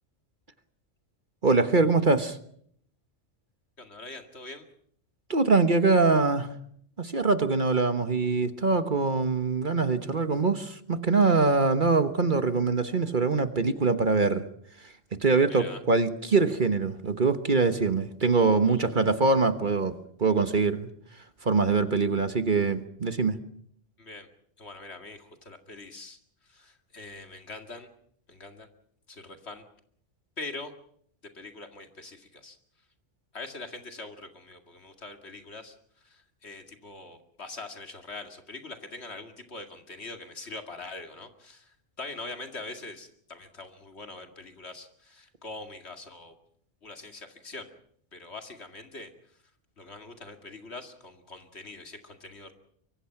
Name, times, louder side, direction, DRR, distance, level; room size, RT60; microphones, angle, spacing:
voice 1, 1.4-2.4 5.3-6.5 7.0-14.4 14.8-14.9 15.2-19.9 20.2-20.9 21.4-23.4, right 4 dB, 40° right, 10 dB, 1.3 m, -23 dB
voice 2, 3.8-4.7 15.6-15.8 18.7-19.1 24.0-24.3 24.6-27.9 28.3-28.7 29.1-29.6 30.4-30.7 31.3-32.6 33.3-46.4 46.8-47.7 48.1-49.4 49.8-52.5, left 3 dB, 60° left, 6 dB, 2.5 m, -43 dB
24.5 x 23.5 x 5.9 m, 0.64 s
omnidirectional pair, 1.3 m